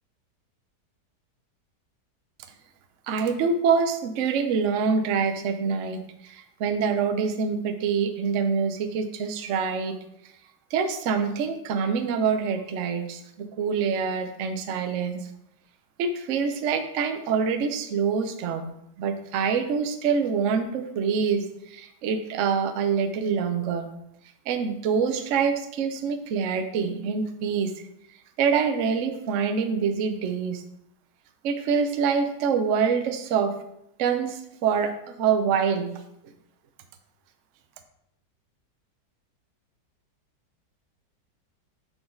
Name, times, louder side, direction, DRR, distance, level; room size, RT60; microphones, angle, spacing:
voice 1, 3.1-10.0 10.7-15.3 16.0-23.9 24.5-27.7 28.4-30.6 31.4-33.5 34.0-35.9, right 6 dB, 65° right, 7 dB, 0.8 m, -25 dB
6.3 x 4.6 x 3.7 m, 0.77 s
omnidirectional pair, 1.9 m